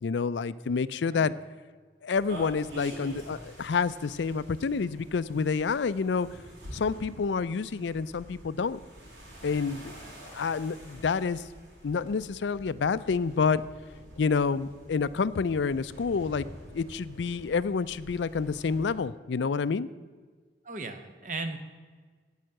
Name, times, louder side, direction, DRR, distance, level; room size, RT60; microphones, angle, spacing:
voice 1, 0.0-1.3 2.0-6.3 6.7-8.8 9.4-10.0 10.2-11.4 11.8-13.6 14.2-16.5 16.7-19.9, left 5 dB, 80° left, 16 dB, 0.4 m, -28 dB
sound 1, 2.1-18.9, equal, 85° right, 4.6 m, -47 dB
voice 2, 20.6-21.6, right 3 dB, 45° right, 8 dB, 1.0 m, -36 dB
16.5 x 5.7 x 7.6 m, 1.5 s
head